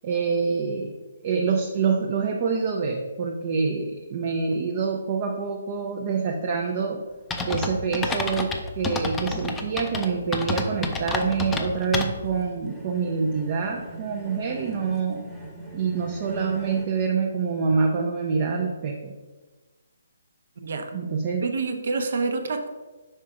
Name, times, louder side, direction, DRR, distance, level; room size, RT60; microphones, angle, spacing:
voice 1, 0.0-0.9 1.2-7.0 7.4-15.2 15.7-19.1 20.9-21.5, right 5 dB, 35° right, 2 dB, 0.6 m, -26 dB
sound 1, 7.3-12.4, left 3 dB, 10° left, 0.5 m, -29 dB
sound 2, 8.7-16.9, right 2 dB, 5° right, 1.0 m, -42 dB
voice 2, 20.6-20.9 21.4-22.7, right 4 dB, 60° right, 6 dB, 0.8 m, -27 dB
5.5 x 3.7 x 4.7 m, 1.2 s
hypercardioid pair, 155°, 0 cm